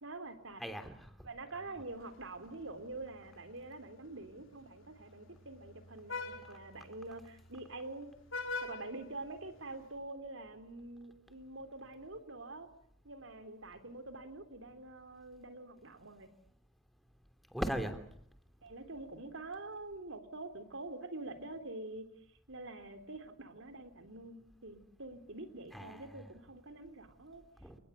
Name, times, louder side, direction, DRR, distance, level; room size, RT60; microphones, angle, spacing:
voice 1, 0.0-0.6 1.2-8.1 8.6-12.7 13.0-16.3 18.6-22.1 22.5-27.4, right 2 dB, 85° right, 9 dB, 3.5 m, -46 dB
voice 2, 0.6-1.1 1.6-1.9 17.5-18.0 25.7-26.3 27.6-27.8, equal, ahead, 7 dB, 3.2 m, -39 dB
Vehicle horn car horn honking, 1.8-9.9, left 3 dB, 75° left, 3.7 m, -47 dB
29.5 x 20.0 x 8.2 m, 0.67 s
head